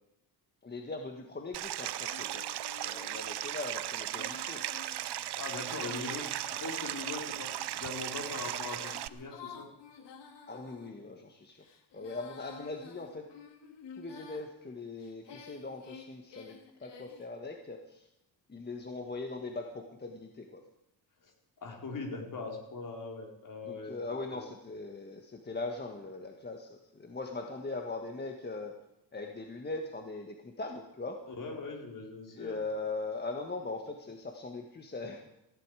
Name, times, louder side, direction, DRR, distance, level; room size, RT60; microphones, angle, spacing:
voice 1, 0.6-2.5 2.8-4.6 10.5-11.6 11.9-13.3 14.0-18.1 18.5-20.6 23.7-28.7 29.1-31.2 32.3-35.2, left 3 dB, 25° left, 3 dB, 1.5 m, -40 dB
Stream, 1.5-9.1, right 13 dB, 70° right, 0.7 m, -37 dB
Female singing, 2.0-10.9 11.5-14.5 15.0-17.3, left 6 dB, 85° left, 2.4 m, -51 dB
voice 2, 5.4-9.5 21.2-21.3 21.6-23.9 24.3-24.4 31.3-32.6, left 3 dB, 50° left, 1 dB, 4.2 m, -41 dB
18.5 x 15.5 x 4.9 m, 0.85 s
cardioid pair, 135°, 41 cm